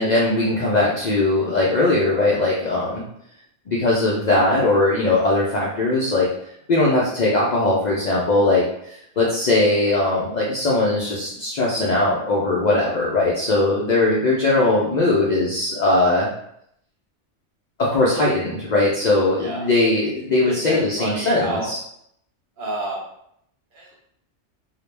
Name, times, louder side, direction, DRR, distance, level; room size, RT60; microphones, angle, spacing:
voice 1, 0.0-3.1 3.7-6.3 6.7-16.3 17.8-21.8, left 2 dB, 65° left, -5 dB, 0.4 m, -20 dB
voice 2, 20.4-21.7 22.6-23.0 23.7-23.9, right 2 dB, 55° right, -3 dB, 0.7 m, -30 dB
2.3 x 2.0 x 3.1 m, 0.74 s
omnidirectional pair, 1.2 m